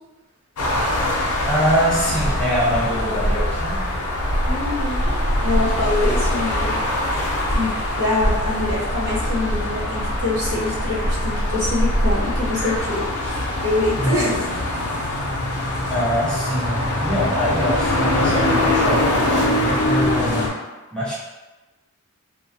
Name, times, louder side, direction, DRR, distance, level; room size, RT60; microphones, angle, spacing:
sound 1, 0.6-20.5, left 1 dB, 80° left, 0.5 m, -22 dB
voice 1, 1.5-3.9 14.0-14.8 15.9-20.5 20.9-21.1, equal, 5° left, -11 dB, 0.6 m, -24 dB
voice 2, 4.4-5.1 5.4-6.8 7.5-14.4, left 2 dB, 60° right, -8 dB, 1.0 m, -25 dB
2.3 x 2.2 x 2.6 m, 1.1 s
head